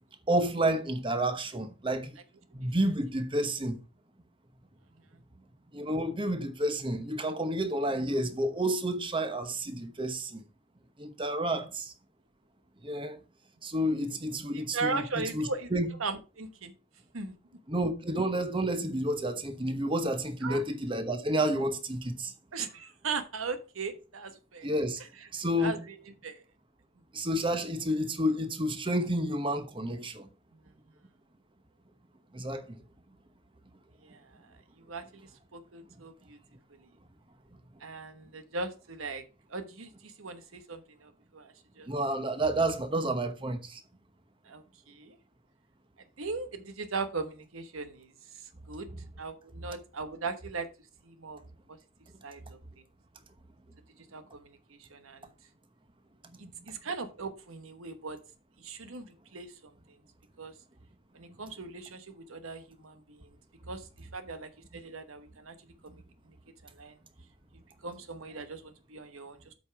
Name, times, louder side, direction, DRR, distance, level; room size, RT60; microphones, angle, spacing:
voice 1, 0.3-2.1 2.5-3.8 5.7-10.4 11.0-11.9 12.8-13.2 13.6-15.9 17.7-22.3 24.6-25.0 25.3-25.8 27.1-30.3 32.3-32.8 41.9-43.8, right 1 dB, 25° right, 1.0 m, -30 dB
voice 2, 14.5-15.7 16.0-16.7 17.1-17.3 20.4-20.6 22.5-24.7 25.6-25.8 26.2-26.4 30.5-30.6 34.0-34.4 34.8-36.4 37.8-39.2 39.5-41.9 44.4-45.2 46.2-48.1 48.7-48.9 49.2-50.7 51.0-51.4 51.7-51.8 52.2-52.6 54.1-55.3 56.4-58.2 58.6-60.0 60.4-60.5 61.1-63.4 63.7-65.5 65.8-65.9 66.3-66.4 66.6-66.9 67.8-69.5, right 4 dB, 85° right, 1.1 m, -39 dB
8.0 x 5.4 x 4.6 m
head